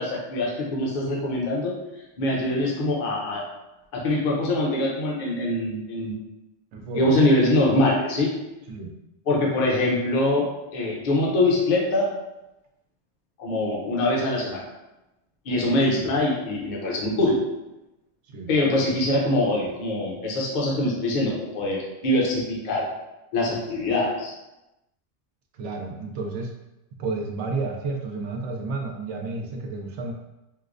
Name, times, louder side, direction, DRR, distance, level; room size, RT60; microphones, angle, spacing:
voice 1, 0.0-1.7 2.2-3.4 3.9-6.2 6.9-8.4 9.3-12.1 13.4-14.6 15.5-17.4 18.5-22.9 23.3-24.3, left 1 dB, 50° left, -3 dB, 0.7 m, -23 dB
voice 2, 6.7-7.1 8.7-8.9 18.3-18.5 25.6-26.5 27.0-30.1, right 3 dB, 85° right, 1 dB, 0.9 m, -31 dB
4.6 x 2.1 x 2.5 m, 0.96 s
omnidirectional pair, 1.2 m